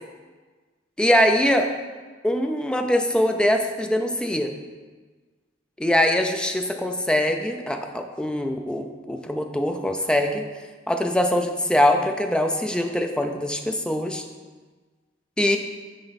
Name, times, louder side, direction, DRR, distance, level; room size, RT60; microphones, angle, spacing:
voice 1, 1.0-1.7 2.2-4.5 5.8-10.4 10.9-14.2 15.4-15.6, left 1 dB, 5° left, 4 dB, 0.5 m, -22 dB
9.9 x 4.4 x 4.1 m, 1.4 s
head